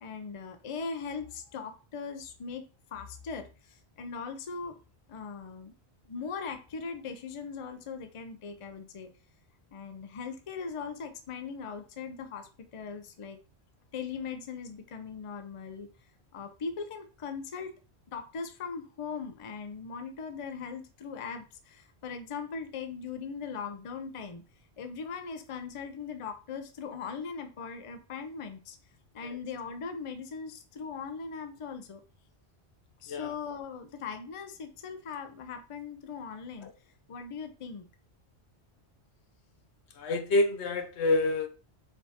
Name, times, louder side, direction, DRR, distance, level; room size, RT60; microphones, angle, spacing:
voice 1, 0.0-2.6 2.9-4.8 5.1-5.7 6.0-9.1 9.7-13.4 13.9-15.9 16.3-17.7 18.1-24.4 24.8-28.8 29.1-32.0 33.0-36.7 37.1-37.9, left 5 dB, 40° left, 0.5 m, -39 dB
voice 2, 40.0-41.5, left 2 dB, 85° left, 1.0 m, -27 dB
4.6 x 3.4 x 2.8 m
omnidirectional pair, 1.1 m